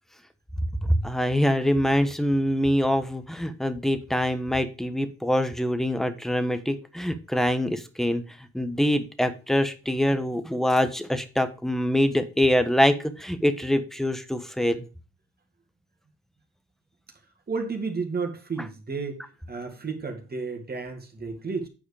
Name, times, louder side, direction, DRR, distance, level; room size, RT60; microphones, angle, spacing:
voice 1, 0.8-8.2 8.5-14.8, equal, ahead, 10 dB, 1.1 m, -24 dB
voice 2, 17.5-19.2 19.5-21.7, right 4 dB, 30° right, 3 dB, 2.1 m, -32 dB
9.0 x 4.9 x 4.9 m, 0.32 s
cardioid pair, 90°, 30 cm